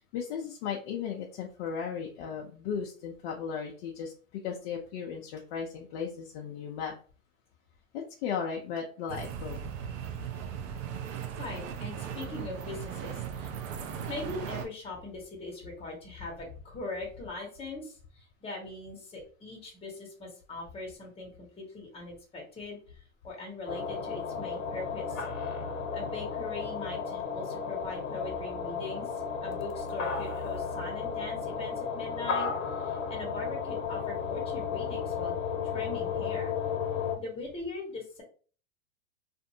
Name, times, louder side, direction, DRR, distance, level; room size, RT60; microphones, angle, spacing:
voice 1, 0.0-6.9 7.9-9.6, left 7 dB, 45° left, -1 dB, 0.6 m, -36 dB
sound 1, 9.1-14.7, right 8 dB, 65° right, 0.7 m, -38 dB
voice 2, 11.4-13.5 14.1-25.6 25.9-29.1 29.3-32.5 32.8-35.4 35.7-36.5 37.2-38.2, left 3 dB, 15° left, -1 dB, 1.1 m, -41 dB
sound 2, 23.7-37.2, left 6 dB, 65° left, 1.0 m, -34 dB
2.6 x 2.5 x 2.6 m, 0.40 s
hypercardioid pair, 125°, 42 cm